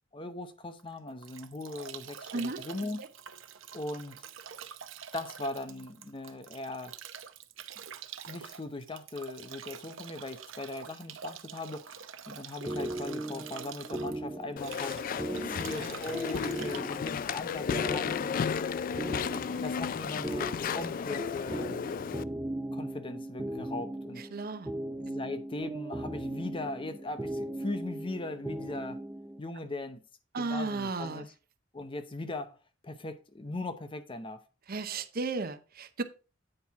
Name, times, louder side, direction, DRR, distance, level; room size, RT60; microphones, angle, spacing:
voice 1, 0.1-3.0 3.7-4.2 5.1-6.9 8.3-15.0 15.4-18.4 19.5-21.8 22.7-24.2 25.0-29.0 29.4-30.0 30.3-31.3 31.7-32.6 32.8-34.4, left 2 dB, 25° left, 0.7 m, -39 dB
Bathtub (filling or washing) / Drip / Trickle dribble, 0.8-18.0, right 8 dB, 80° right, 0.7 m, -46 dB
sound 1, 12.6-29.4, right 1 dB, 10° right, 0.7 m, -38 dB
Walk footsteps / Chatter / Squeak, 14.6-22.2, left 7 dB, 45° left, 0.3 m, -33 dB
voice 2, 15.2-15.9 24.2-24.7 30.3-31.3 34.7-36.0, right 3 dB, 50° right, 0.7 m, -35 dB
8.8 x 4.4 x 4.6 m
head